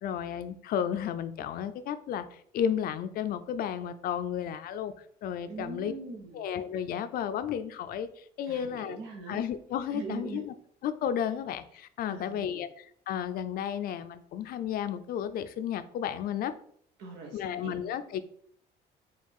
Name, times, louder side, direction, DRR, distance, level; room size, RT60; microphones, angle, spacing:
voice 1, 0.0-2.3 2.5-4.9 5.2-5.9 6.3-8.1 8.4-9.0 9.3-10.5 10.8-16.5 17.3-18.2, left 9 dB, 60° left, 12 dB, 0.4 m, -33 dB
voice 2, 5.4-6.4 8.5-9.5 9.9-10.4 12.1-12.6 17.0-17.8, right 4 dB, 80° right, 2 dB, 0.9 m, -41 dB
4.7 x 2.4 x 3.5 m, 0.64 s
cardioid pair, 110°, 17 cm